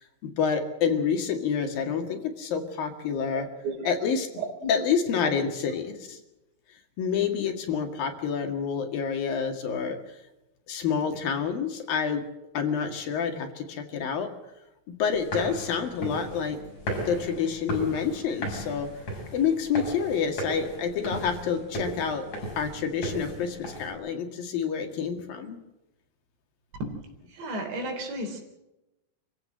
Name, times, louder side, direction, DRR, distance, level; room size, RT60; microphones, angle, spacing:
voice 1, 0.0-3.5 3.9-4.3 4.7-6.2 7.0-10.0 10.7-12.2 12.5-14.3 14.9-16.6 17.1-18.9 19.3-22.3 22.6-25.6, left 6 dB, 60° left, 5 dB, 3.5 m, -28 dB
voice 2, 3.3-3.9 4.4-4.7 26.8-27.0 27.3-28.4, right 2 dB, 90° right, 4 dB, 6.2 m, -33 dB
sound 1, 15.1-23.9, equal, 40° left, 7.8 m, -36 dB
27.0 x 15.5 x 7.7 m, 0.94 s
omnidirectional pair, 4.9 m